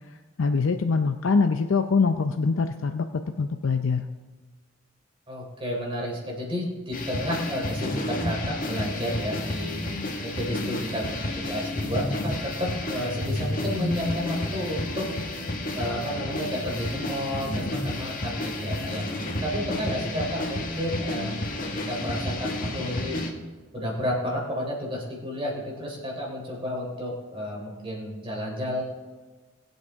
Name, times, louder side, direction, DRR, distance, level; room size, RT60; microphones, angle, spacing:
voice 1, 0.4-4.1, left 4 dB, 75° left, 6 dB, 0.6 m, -24 dB
voice 2, 5.3-9.8 10.2-15.0 15.7-19.0 19.4-21.5 21.7-23.2 23.7-28.8, equal, 25° right, -2 dB, 3.5 m, -31 dB
sound 1, 6.9-23.3, left 1 dB, 45° left, 1.6 m, -31 dB
21.5 x 8.0 x 3.6 m, 1.3 s
head